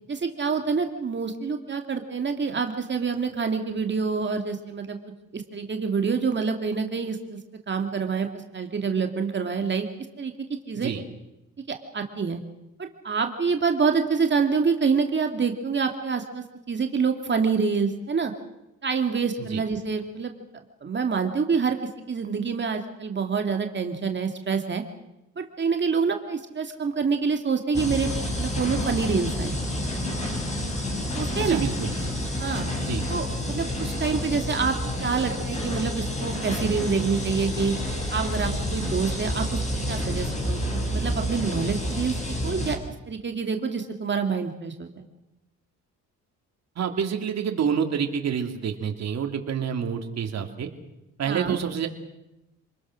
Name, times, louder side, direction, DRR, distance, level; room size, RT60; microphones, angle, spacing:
voice 1, 0.1-5.0 5.3-7.4 7.7-9.9 10.2-10.3 10.7-10.9 11.7-12.4 12.8-18.3 18.8-20.3 20.8-21.8 22.1-24.8 25.4-28.1 28.4-29.5 31.2-31.6 32.4-32.7 33.1-37.8 38.1-39.6 39.9-42.8 43.1-45.1 51.3-51.6, right 5 dB, 35° right, 5 dB, 2.3 m, -27 dB
sound 1, 27.7-42.8, left 1 dB, 25° left, 6.3 m, -29 dB
voice 2, 31.5-31.9 32.8-33.0 46.8-50.7 51.2-51.9, right 7 dB, 60° right, 4 dB, 3.1 m, -27 dB
28.5 x 21.0 x 6.3 m, 0.92 s
cardioid pair, 90°, 30 cm